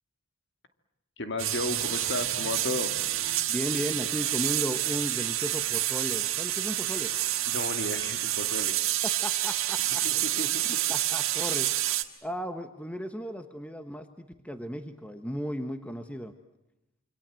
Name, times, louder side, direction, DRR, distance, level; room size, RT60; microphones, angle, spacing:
voice 1, 1.2-3.0 7.5-8.7 9.9-10.7, left 2 dB, 50° left, 7 dB, 2.4 m, -34 dB
sound 1, 1.4-12.0, right 13 dB, 65° right, 1.8 m, -28 dB
voice 2, 3.5-7.1 9.0-10.5 10.9-12.0 12.2-16.3, equal, 5° left, 8 dB, 1.2 m, -35 dB
27.0 x 26.0 x 7.7 m, 0.88 s
head